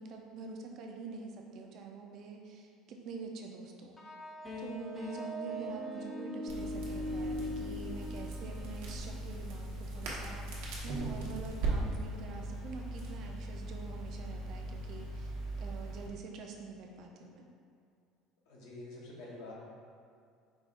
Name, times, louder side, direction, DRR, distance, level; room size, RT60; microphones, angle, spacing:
voice 1, 0.0-4.0 4.6-17.5, right 4 dB, 45° right, 2 dB, 0.4 m, -46 dB
sound 1, 4.0-9.1, equal, 15° left, 0.5 m, -40 dB
Crackle, 6.5-16.1, right 2 dB, 85° right, 0.9 m, -39 dB
voice 2, 18.5-19.5, left 2 dB, 70° left, -4 dB, 1.0 m, -47 dB
4.9 x 2.4 x 3.7 m, 2.4 s
cardioid pair, 165°, 0 cm